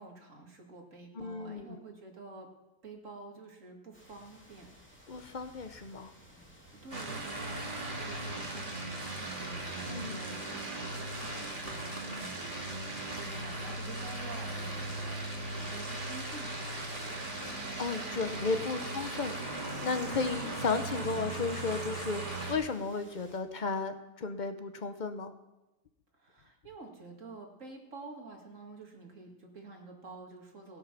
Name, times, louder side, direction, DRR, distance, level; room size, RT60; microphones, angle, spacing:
voice 1, 0.0-2.5 2.8-4.7 6.7-17.2 18.8-19.2 26.1-30.8, right 3 dB, 45° right, 1 dB, 2.4 m, -49 dB
voice 2, 1.2-1.8 5.1-6.1 9.9-10.2 17.5-25.3, left 4 dB, 50° left, 8 dB, 0.5 m, -34 dB
sound 1, 3.9-23.4, equal, 5° left, 2.6 m, -58 dB
sound 2, 6.9-22.5, right 2 dB, 30° right, 2.7 m, -38 dB
20.0 x 6.8 x 5.9 m, 1.0 s
omnidirectional pair, 1.8 m